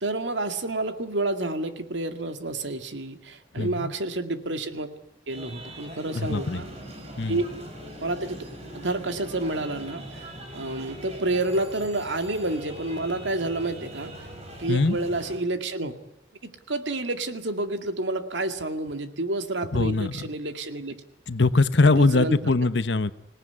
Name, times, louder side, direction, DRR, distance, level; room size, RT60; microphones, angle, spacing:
voice 1, 0.0-4.9 5.3-6.7 7.3-7.4 8.0-8.4 8.7-10.3 10.5-14.3 14.6-15.9 16.4-20.9 21.8-22.5, right 2 dB, 85° right, 7 dB, 2.2 m, -29 dB
voice 2, 3.6-3.9 6.1-6.6 7.2-7.4 14.7-15.0 19.7-20.2 21.3-23.1, left 3 dB, 75° left, 13 dB, 1.0 m, -22 dB
sound 1, 5.3-15.4, right 1 dB, 35° right, 5.2 m, -41 dB
26.5 x 18.0 x 9.8 m, 0.87 s
head